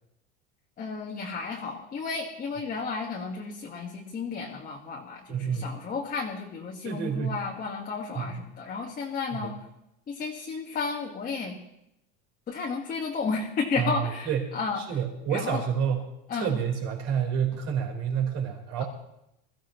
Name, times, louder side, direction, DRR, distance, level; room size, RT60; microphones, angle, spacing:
voice 1, 0.8-9.5 10.1-11.6 12.5-14.8 15.3-15.6 16.3-16.6, left 4 dB, 25° left, -1 dB, 1.6 m, -33 dB
voice 2, 5.3-5.8 6.8-7.4 8.1-8.4 9.3-9.5 13.8-18.8, right 7 dB, 50° right, 1 dB, 4.1 m, -29 dB
22.0 x 14.5 x 3.1 m, 0.83 s
supercardioid pair, 130°, 32 cm